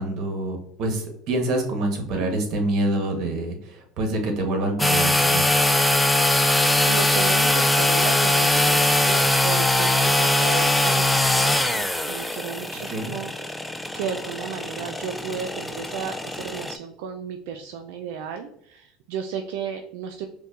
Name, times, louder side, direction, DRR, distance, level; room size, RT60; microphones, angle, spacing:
voice 1, 0.0-5.5 12.9-13.1, right 2 dB, 55° right, 4 dB, 1.0 m, -26 dB
sound 1, 4.8-16.8, left 1 dB, 5° left, 0.3 m, -21 dB
voice 2, 6.8-13.7 13.9-20.3, right 7 dB, 75° right, 5 dB, 0.3 m, -34 dB
5.2 x 2.2 x 2.4 m, 0.71 s
supercardioid pair, 100°, 0 cm